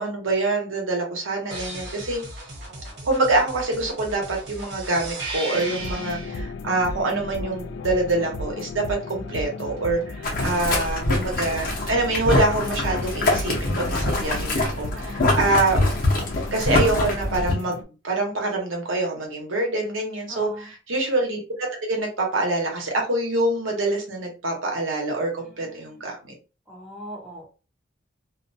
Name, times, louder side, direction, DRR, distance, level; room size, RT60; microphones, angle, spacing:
voice 1, 0.0-2.2 3.0-15.8 16.5-17.8 18.0-20.5 20.9-26.3, right 2 dB, 85° right, 0 dB, 0.9 m, -25 dB
Just an Intro Thing, 1.5-6.3 9.1-10.2, right 2 dB, 55° right, 0.9 m, -36 dB
sound 1, 5.5-17.8, left 2 dB, 75° left, 0.3 m, -35 dB
Boiling, 10.2-17.5, left 1 dB, 45° left, 0.7 m, -24 dB
voice 2, 10.2-10.5 14.9-15.3 20.3-20.7 25.4-26.0 26.7-27.5, right 1 dB, ahead, -3 dB, 0.5 m, -42 dB
2.5 x 2.2 x 2.6 m, 0.33 s
head